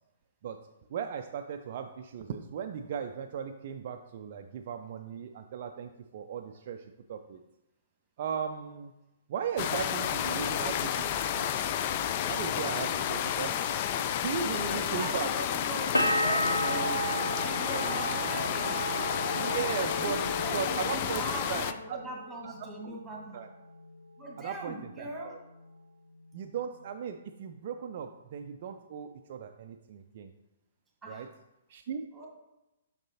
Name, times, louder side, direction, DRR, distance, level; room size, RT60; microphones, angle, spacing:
voice 1, 0.9-7.4 8.2-8.9 9.3-11.8 12.3-13.6 14.2-15.3 19.3-20.2 20.5-21.2 21.5-22.0 22.4-22.5 22.8-22.9 23.3-23.5 24.4-25.4 26.3-30.3 31.1-31.3 31.7-32.3, right 7 dB, 45° right, 6 dB, 0.3 m, -37 dB
sound 1, 9.6-21.7, left 9 dB, 35° left, 0.3 m, -31 dB
voice 2, 14.3-17.0 17.3-18.9 20.0-23.4 24.2-25.4 31.0-31.3 32.1-32.3, right 2 dB, 5° right, -2 dB, 1.7 m, -41 dB
sound 2, 15.9-21.6 21.9-22.6, right 1 dB, 85° left, 0.6 m, -32 dB
6.1 x 6.0 x 2.8 m, 0.97 s
figure-of-eight pair, 120°, 0 cm